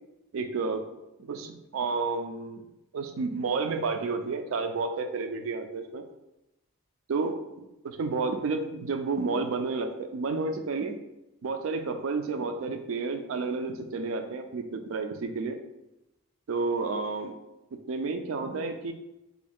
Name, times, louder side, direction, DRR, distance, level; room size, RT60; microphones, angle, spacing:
voice 1, 0.3-0.8 1.3-2.7 2.9-6.0 7.1-7.3 7.8-11.0 11.4-15.6 16.5-17.3 17.9-18.9, right 4 dB, 70° right, 7 dB, 0.4 m, -30 dB
3.5 x 2.2 x 3.5 m, 0.94 s
head